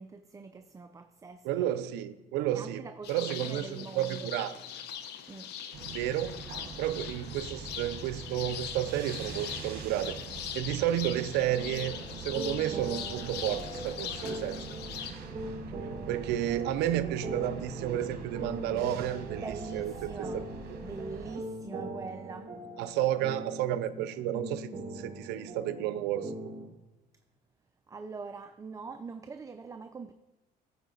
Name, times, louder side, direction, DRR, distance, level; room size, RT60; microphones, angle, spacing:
voice 1, 0.0-1.7 2.5-4.3 5.3-5.5 19.4-20.4 20.8-22.5 27.9-30.1, right 4 dB, 20° right, 8 dB, 0.4 m, -43 dB
voice 2, 1.4-2.8 3.1-4.5 5.9-6.4 6.8-10.2 10.5-14.6 16.1-19.4 19.7-20.1 22.8-26.3, right 12 dB, 90° right, 13 dB, 0.5 m, -31 dB
sound 1, 3.0-15.1, left 9 dB, 80° left, 0.8 m, -41 dB
sound 2, 5.7-21.4, right 6 dB, 65° right, 1.3 m, -44 dB
sound 3, 11.5-26.7, right 1 dB, 35° right, 1.6 m, -41 dB
14.0 x 4.8 x 3.8 m, 1.1 s
cardioid pair, 110°, 17 cm